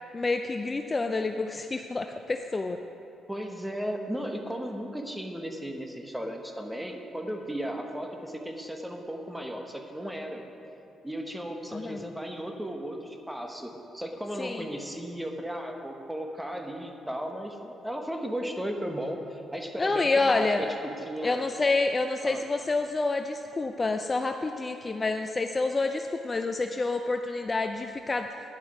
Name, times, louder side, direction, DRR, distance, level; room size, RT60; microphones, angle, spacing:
voice 1, 0.1-2.8 11.7-12.1 14.4-14.7 19.8-20.7 21.2-28.3, left 3 dB, 25° left, 6 dB, 0.5 m, -28 dB
voice 2, 3.3-10.4 11.0-21.5 22.2-22.4, equal, 5° right, 3 dB, 1.2 m, -35 dB
11.0 x 10.0 x 4.9 m, 2.8 s
cardioid pair, 90°, 0 cm